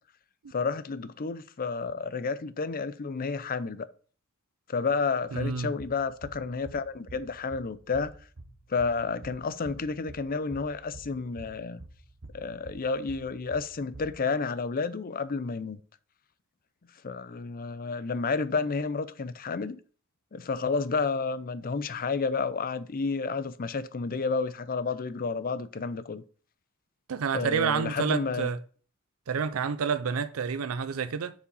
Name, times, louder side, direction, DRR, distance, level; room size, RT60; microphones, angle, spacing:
voice 1, 0.5-3.9 4.7-8.1 8.7-11.8 12.3-15.8 17.0-19.8 20.3-26.2 27.3-28.5, left 4 dB, 45° left, 0.6 m, -31 dB
voice 2, 5.3-5.7 27.1-28.6 29.3-31.3, right 6 dB, 85° right, 0.5 m, -29 dB
sound 1, 5.8-14.2, right 2 dB, 65° right, 1.0 m, -48 dB
6.9 x 5.0 x 5.4 m
head